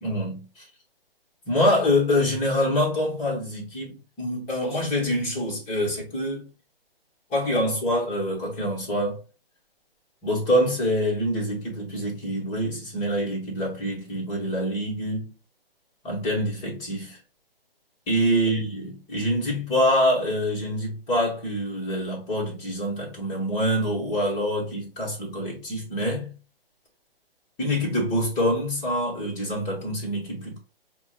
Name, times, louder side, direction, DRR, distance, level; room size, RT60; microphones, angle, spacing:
voice 1, 0.0-0.7 1.4-6.4 7.3-9.2 10.2-15.3 16.0-17.2 18.1-26.3 27.6-30.6, equal, 15° left, 1.1 m, -25 dB
5.7 x 2.2 x 2.3 m
figure-of-eight pair, 140°, 30 cm